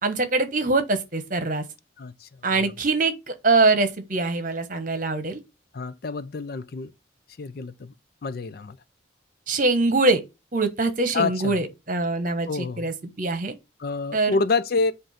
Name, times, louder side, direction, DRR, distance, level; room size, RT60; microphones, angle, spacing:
voice 1, 0.0-1.6 2.4-5.4 9.5-10.2 10.5-13.5 14.1-14.4, right 3 dB, 45° right, 1.1 m, -23 dB
voice 2, 2.0-2.3 2.5-2.6 5.7-6.9 7.4-7.9 8.2-8.8 11.1-11.6 12.5-12.9 13.8-14.9, left 4 dB, 50° left, 0.4 m, -27 dB
7.7 x 2.6 x 5.7 m
head